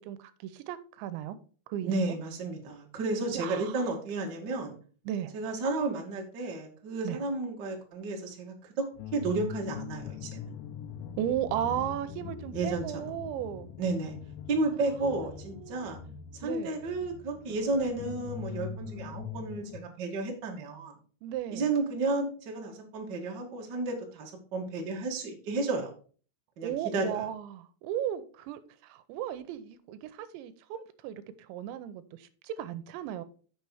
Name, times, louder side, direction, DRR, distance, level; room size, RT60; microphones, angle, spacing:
voice 1, 0.0-1.4 1.7-2.2 3.3-3.7 5.1-5.3 7.0-7.2 11.2-13.7 15.0-15.3 15.6-16.1 16.4-16.8 21.2-21.6 26.6-31.2 31.5-33.2, right 11 dB, 85° right, 2.9 m, -35 dB
voice 2, 1.8-4.8 5.3-8.5 9.1-10.4 12.5-13.0 13.8-14.1 14.5-16.0 16.4-20.9 21.5-25.9 26.6-27.2, right 3 dB, 70° right, 1.0 m, -32 dB
sound 1, 8.9-19.8, left 7 dB, 80° left, 3.1 m, -42 dB
6.8 x 6.7 x 4.7 m
omnidirectional pair, 5.2 m